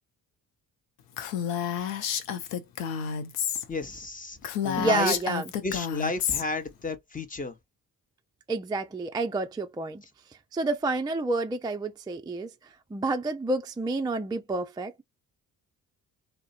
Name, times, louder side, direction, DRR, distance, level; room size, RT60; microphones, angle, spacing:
Female speech woman speaking, 1.2-3.6 4.0-4.1 4.4-6.4, left 8 dB, 90° left, 0.6 m, -30 dB
voice 1, 3.7-4.4 4.6-5.1 5.6-7.6, left 3 dB, 20° left, 0.8 m, -32 dB
voice 2, 4.8-5.5 8.5-10.0 10.3-15.0, right 3 dB, 10° right, 0.3 m, -29 dB
2.4 x 2.1 x 2.4 m
hypercardioid pair, 50°, 43 cm